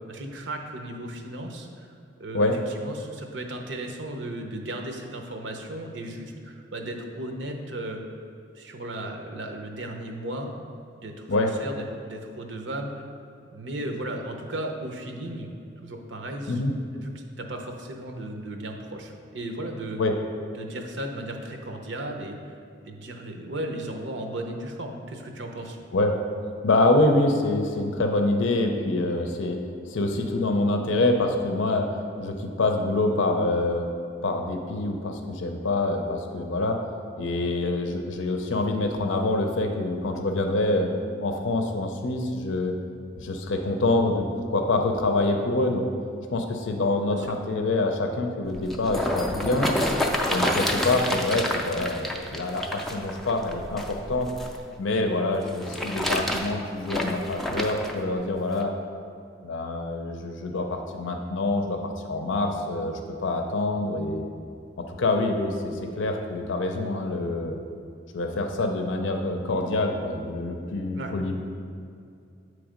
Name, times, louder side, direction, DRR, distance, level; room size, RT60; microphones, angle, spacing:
voice 1, 0.1-1.9 2.2-2.5 2.8-8.0 8.6-10.5 11.0-13.0 13.5-15.5 15.8-16.6 17.0-20.0 20.5-22.4 22.9-25.8 47.1-47.3 70.9-71.1, right 1 dB, 75° right, 3 dB, 0.7 m, -35 dB
voice 2, 26.6-29.6 29.9-33.9 34.2-36.8 37.2-40.9 41.2-42.7 43.2-45.9 46.3-49.7 50.3-54.3 54.8-58.7 59.4-64.2 64.8-67.6 68.1-71.4, left 2 dB, 85° left, 4 dB, 0.5 m, -26 dB
sound 1, 48.5-54.6 55.4-57.9 58.6-58.7, left 1 dB, ahead, 0.4 m, -28 dB
8.1 x 3.3 x 5.0 m, 2.4 s
head